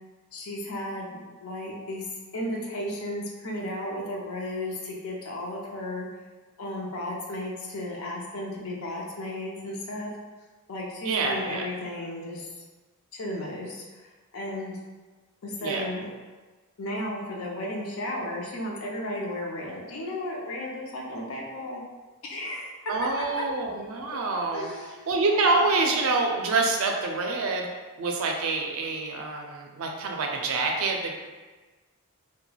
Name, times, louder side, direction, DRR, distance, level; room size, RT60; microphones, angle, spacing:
voice 1, 0.3-2.1 2.3-6.1 6.6-10.1 10.7-12.5 13.1-14.8 15.4-16.1 16.8-21.8 22.2-23.3 24.5-25.1, left 1 dB, 65° left, -2 dB, 0.5 m, -34 dB
voice 2, 11.0-11.6 15.6-15.8 22.9-24.7 25.1-27.7 28.0-31.2, right 3 dB, 65° right, 2 dB, 0.4 m, -26 dB
3.1 x 2.2 x 2.2 m, 1.3 s
head